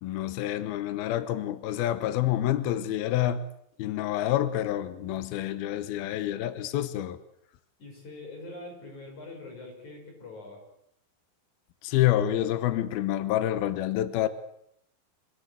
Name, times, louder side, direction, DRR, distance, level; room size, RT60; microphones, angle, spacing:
voice 1, 0.0-3.4 3.8-7.2 11.8-14.3, left 13 dB, 85° left, 2.2 m, -28 dB
voice 2, 7.8-10.6, left 2 dB, 35° left, 7.1 m, -43 dB
26.5 x 17.0 x 8.1 m
omnidirectional pair, 5.9 m